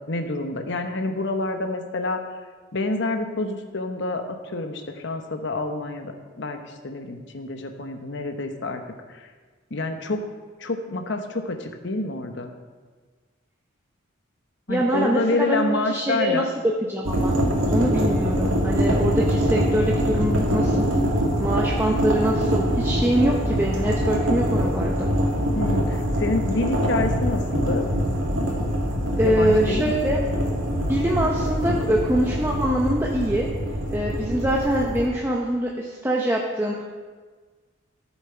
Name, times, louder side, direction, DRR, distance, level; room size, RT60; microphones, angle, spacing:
voice 1, 0.1-2.2 2.7-8.8 9.1-9.3 9.7-10.3 10.6-12.5 14.7-16.5 25.5-27.9 29.2-29.9, left 2 dB, 60° left, 6 dB, 1.0 m, -28 dB
voice 2, 14.7-16.4 16.9-17.4 17.7-20.9 21.4-25.1 29.2-30.2 30.9-33.5 33.9-36.8, right 1 dB, 10° right, -2 dB, 0.8 m, -24 dB
sound 1, 17.0-35.1, equal, 80° right, 2.2 m, -24 dB
14.0 x 7.3 x 4.4 m, 1.4 s
head